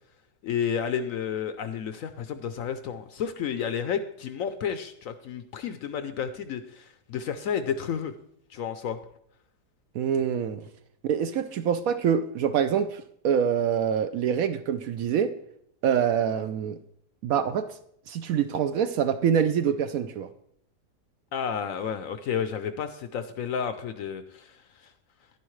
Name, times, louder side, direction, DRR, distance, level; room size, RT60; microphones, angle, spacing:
voice 1, 0.4-8.1 8.5-9.0 21.3-24.9, left 7 dB, 65° left, 10 dB, 0.9 m, -31 dB
voice 2, 9.9-10.6 11.0-15.3 15.8-16.8 17.2-17.7 18.1-20.3, right 8 dB, 70° right, 11 dB, 0.9 m, -25 dB
10.5 x 10.0 x 3.1 m, 0.69 s
omnidirectional pair, 1.8 m